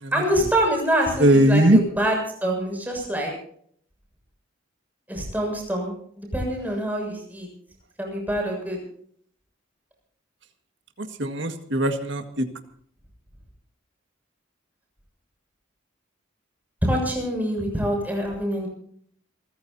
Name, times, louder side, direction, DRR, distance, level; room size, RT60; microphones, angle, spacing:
voice 1, 0.1-3.3 5.1-7.5 8.0-8.8 16.8-18.7, right 1 dB, 10° right, 0 dB, 6.9 m, -25 dB
voice 2, 1.2-1.8 11.2-12.4, right 1 dB, 60° right, 6 dB, 1.8 m, -19 dB
28.0 x 15.0 x 2.8 m, 0.62 s
head